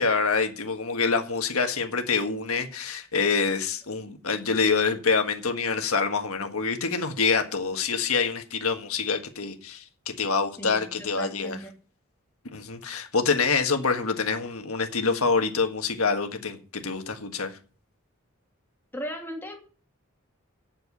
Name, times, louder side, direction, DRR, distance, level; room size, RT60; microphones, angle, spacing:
voice 1, 0.0-11.6 12.5-17.6, left 4 dB, 85° left, 1.6 m, -26 dB
voice 2, 10.6-11.7 18.9-19.6, equal, 10° left, 2.3 m, -37 dB
7.5 x 7.5 x 8.4 m
head